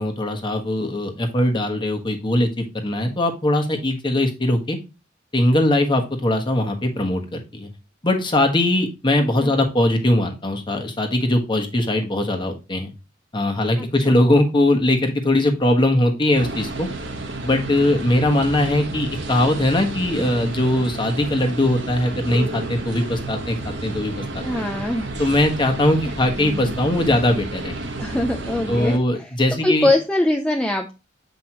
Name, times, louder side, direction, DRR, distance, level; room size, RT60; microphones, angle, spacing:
voice 1, 0.0-4.8 5.3-7.7 8.0-12.9 13.3-16.9 17.4-24.4 25.2-27.8 28.7-29.9, left 1 dB, 25° left, 3 dB, 1.3 m, -20 dB
voice 2, 13.8-14.2 24.4-25.1 28.0-29.3 29.6-30.9, left 1 dB, 5° left, 2 dB, 0.5 m, -22 dB
sound 1, 16.3-29.0, right 2 dB, 80° right, 1.3 m, -31 dB
7.7 x 5.2 x 3.0 m, 0.28 s
head